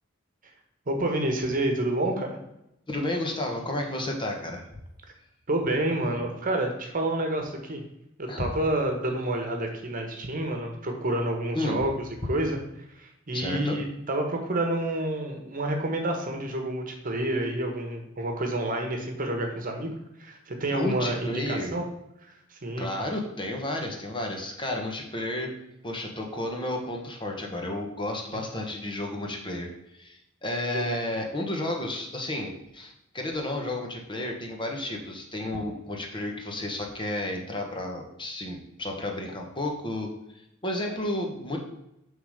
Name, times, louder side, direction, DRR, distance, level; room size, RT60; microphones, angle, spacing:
voice 1, 0.9-2.4 5.5-7.8 8.2-11.9 12.2-12.6 13.0-21.8 22.3-22.9 30.7-30.9, right 1 dB, 45° right, 3 dB, 1.2 m, -29 dB
voice 2, 2.9-4.6 8.3-8.5 11.5-11.9 13.3-13.8 20.7-21.8 22.8-25.5 25.8-40.1 40.6-41.6, left 1 dB, 25° left, 1 dB, 1.1 m, -32 dB
6.9 x 3.8 x 6.4 m, 0.82 s
head